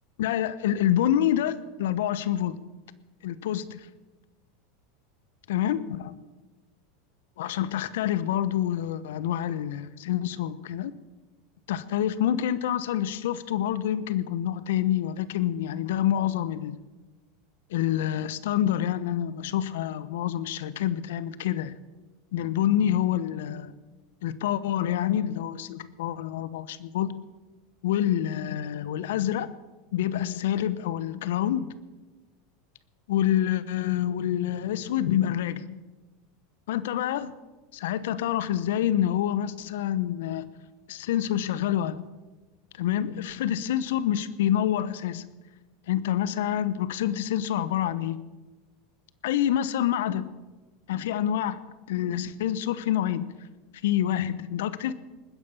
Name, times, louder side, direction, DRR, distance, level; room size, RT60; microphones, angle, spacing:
voice 1, 0.2-2.6 3.2-3.8 5.5-6.2 7.4-10.9 11.7-16.8 17.7-21.8 22.3-23.7 24.2-27.2 27.8-29.5 29.9-31.7 33.1-35.8 36.7-37.3 37.7-40.5 40.9-42.1 42.8-45.3 45.9-48.2 49.2-50.4 50.9-51.6 51.9-53.3 53.8-54.9, left 11 dB, 75° left, 16 dB, 0.9 m, -27 dB
20.0 x 9.9 x 6.9 m, 1.2 s
hypercardioid pair, 95°, 0 cm